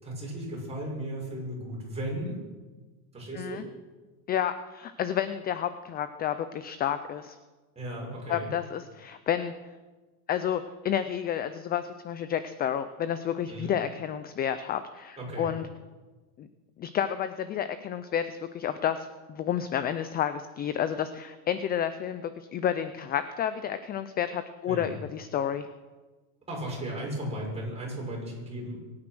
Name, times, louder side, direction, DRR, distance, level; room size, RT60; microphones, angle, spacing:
voice 1, 0.0-2.4 3.1-3.6 7.7-8.5 13.5-13.7 15.2-15.5 24.7-24.9 26.5-28.8, right 1 dB, 15° right, -3 dB, 6.6 m, -35 dB
voice 2, 4.3-7.4 8.3-9.5 10.3-15.7 16.4-16.5 16.8-25.7, left 9 dB, 20° left, 12 dB, 0.4 m, -30 dB
23.5 x 9.7 x 6.2 m, 1.3 s
supercardioid pair, 140°, 45 cm